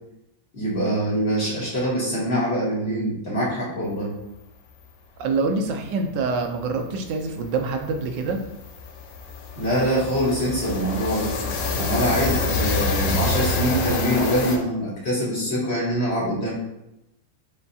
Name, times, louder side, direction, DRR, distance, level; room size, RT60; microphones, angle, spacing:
voice 1, 0.5-4.1 9.6-11.3 11.8-16.5, equal, 40° left, -7 dB, 1.2 m, -24 dB
voice 2, 5.2-8.4, right 4 dB, 85° right, 5 dB, 1.2 m, -25 dB
sound 1, 6.2-6.3 6.5-6.7 7.0-14.6, left 3 dB, 65° left, 0.9 m, -27 dB
6.7 x 2.3 x 2.7 m, 0.88 s
omnidirectional pair, 1.9 m